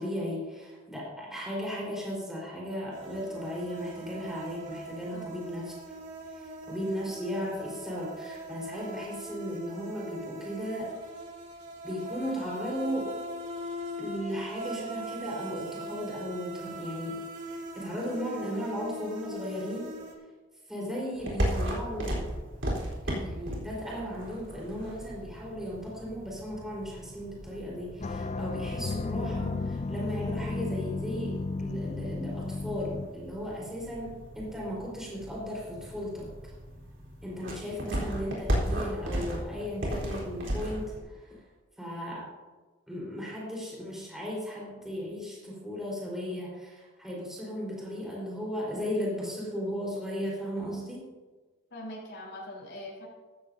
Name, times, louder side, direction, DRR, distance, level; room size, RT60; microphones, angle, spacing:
voice 1, 0.0-5.7 6.3-11.0 11.8-13.3 14.0-17.2 17.5-19.9 20.7-22.2 23.0-36.3 37.2-41.4 41.8-42.3 42.9-51.0, equal, ahead, -6 dB, 4.3 m, -36 dB
sound 1, 2.9-20.1, right 1 dB, 40° right, 2.5 m, -41 dB
sound 2, 21.1-41.0, equal, 70° right, 3.9 m, -36 dB
sound 3, 28.0-33.1, left 3 dB, 35° left, 0.4 m, -33 dB
voice 2, 51.7-53.1, left 1 dB, 65° left, -4 dB, 4.1 m, -42 dB
15.0 x 13.5 x 2.7 m, 1.3 s
head